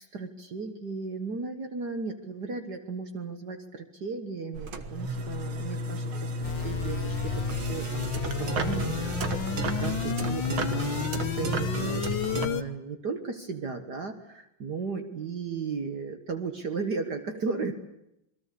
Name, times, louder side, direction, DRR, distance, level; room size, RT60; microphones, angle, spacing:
voice 1, 0.0-17.7, right 4 dB, 55° right, 7 dB, 2.0 m, -36 dB
sound 1, 4.5-12.5, right 1 dB, 70° right, 2.5 m, -32 dB
sound 2, 6.4-12.6, left 7 dB, 65° left, 1.8 m, -32 dB
28.0 x 22.0 x 8.5 m, 0.84 s
omnidirectional pair, 2.3 m